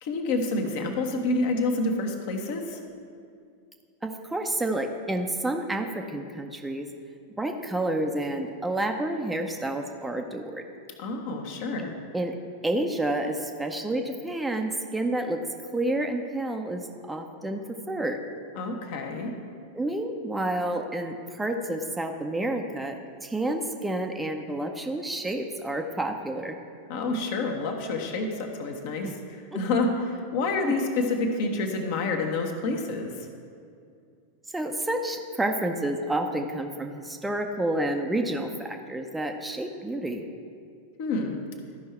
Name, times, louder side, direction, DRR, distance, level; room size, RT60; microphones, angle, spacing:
voice 1, 0.0-2.8 11.0-11.9 18.5-19.3 26.9-33.3 41.0-41.4, left 3 dB, 50° left, 3 dB, 1.1 m, -28 dB
voice 2, 4.0-6.9 7.4-10.6 12.1-12.3 12.6-15.4 15.7-17.6 17.9-18.2 19.7-26.6 29.0-29.1 29.5-29.6 30.6-30.7 34.5-40.2, right 1 dB, 10° right, 4 dB, 0.6 m, -29 dB
13.5 x 5.5 x 4.3 m, 2.3 s
figure-of-eight pair, 90°, 0 cm